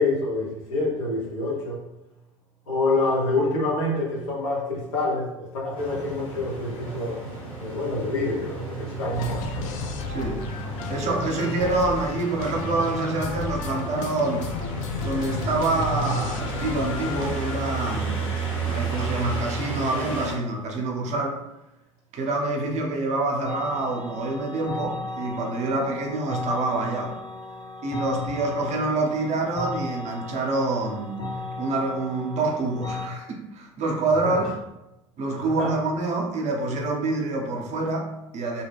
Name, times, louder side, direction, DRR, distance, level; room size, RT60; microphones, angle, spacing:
voice 1, 0.0-1.8 2.7-7.1 7.6-9.6 34.2-34.4 35.4-35.7, left 2 dB, 70° left, -5 dB, 1.1 m, -26 dB
sound 1, 5.7-20.3, right 3 dB, 85° left, 1.4 m, -32 dB
sound 2, 9.1-18.0, left 6 dB, 50° left, 0.4 m, -34 dB
voice 2, 10.1-10.5 10.9-14.5 15.0-21.4 22.1-27.2 27.8-31.3 31.6-34.5 35.2-38.6, right 2 dB, 45° right, 1 dB, 0.7 m, -27 dB
sound 3, 23.4-33.1, left 2 dB, 25° left, 0.8 m, -35 dB
2.3 x 2.1 x 3.3 m, 0.95 s
figure-of-eight pair, 70°, 17 cm